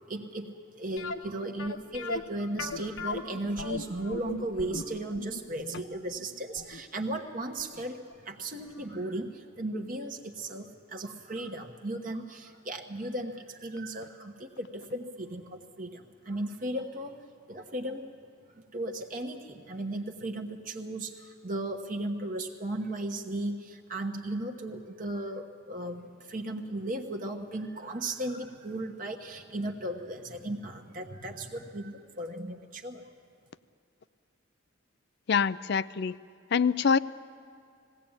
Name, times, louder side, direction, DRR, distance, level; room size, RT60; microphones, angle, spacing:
voice 1, 0.1-8.0 8.2-17.2 17.5-18.1 18.7-33.0, right 1 dB, 40° right, 3 dB, 1.1 m, -36 dB
sound 1, 1.0-7.8 8.1-8.2 8.8-8.9 9.2-9.3, left 3 dB, 70° left, 0.9 m, -38 dB
voice 2, 35.3-36.1 36.5-37.0, left 6 dB, 55° left, 17 dB, 0.5 m, -25 dB
20.0 x 16.5 x 8.8 m, 2.4 s
head